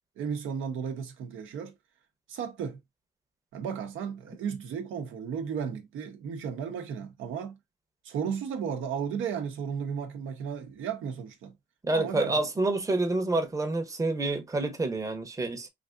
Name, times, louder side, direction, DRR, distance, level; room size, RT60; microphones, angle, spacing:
voice 1, 0.2-1.7 2.3-2.8 3.5-7.6 8.0-11.5 11.9-12.3 12.7-12.8, right 7 dB, 80° right, 0.7 m, -34 dB
voice 2, 11.8-15.7, right 2 dB, 15° right, 0.7 m, -28 dB
3.3 x 2.5 x 2.4 m
cardioid pair, 90°, 20 cm